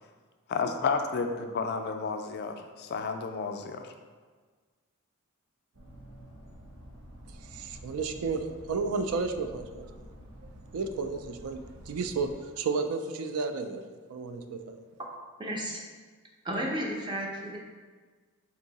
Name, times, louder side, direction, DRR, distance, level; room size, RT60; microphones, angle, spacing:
voice 1, 0.5-3.9, left 4 dB, 50° left, 6 dB, 0.3 m, -31 dB
sound 1, 5.7-12.3, equal, 60° right, 0.8 m, -49 dB
voice 2, 7.5-9.9 10.7-14.8, right 4 dB, 80° right, 8 dB, 0.3 m, -32 dB
voice 3, 15.4-15.8 16.4-17.6, right 1 dB, 20° right, -2 dB, 0.5 m, -33 dB
3.6 x 2.7 x 4.0 m, 1.5 s
head